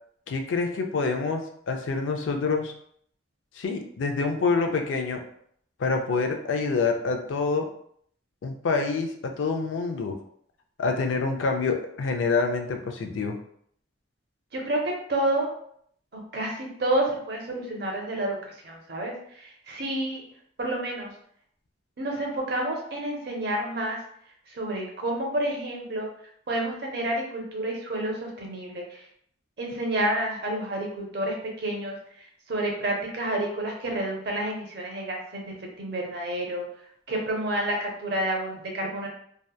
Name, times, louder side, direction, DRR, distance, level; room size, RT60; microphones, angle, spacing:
voice 1, 0.3-2.7 3.6-5.2 5.8-7.7 8.4-10.2 10.8-13.4, left 4 dB, 75° left, 4 dB, 0.4 m, -26 dB
voice 2, 14.5-15.5 16.1-18.4 18.6-20.2 20.6-21.1 22.0-24.0 24.5-26.1 26.5-29.0 29.6-32.0 32.5-36.7 37.1-39.1, right 1 dB, 55° right, 0 dB, 0.6 m, -29 dB
2.8 x 2.1 x 2.3 m, 0.66 s
head